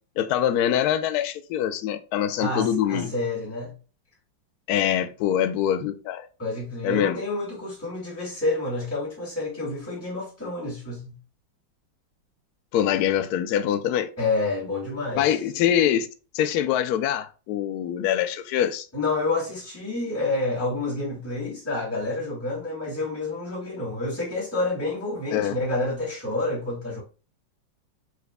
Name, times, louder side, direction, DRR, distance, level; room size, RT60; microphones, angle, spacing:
voice 1, 0.2-3.1 4.7-6.3 6.8-7.2 12.7-14.1 15.2-16.1 16.3-18.9 25.3-25.5, left 10 dB, 90° left, 0.8 m, -24 dB
voice 2, 2.4-3.7 6.4-11.2 14.2-15.4 18.9-27.0, left 2 dB, 5° left, 2.0 m, -29 dB
4.7 x 4.4 x 2.2 m
omnidirectional pair, 2.2 m